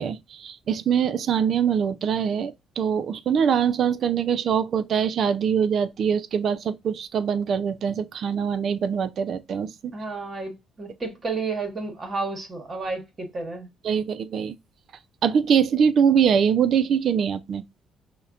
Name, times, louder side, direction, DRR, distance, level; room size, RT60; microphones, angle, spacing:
voice 1, 0.0-9.9 13.8-14.6 15.2-17.6, right 7 dB, 50° right, 0.4 m, -23 dB
voice 2, 9.9-13.7, right 3 dB, 30° right, 1.0 m, -31 dB
5.6 x 2.1 x 2.4 m
cardioid pair, 125°, 0 cm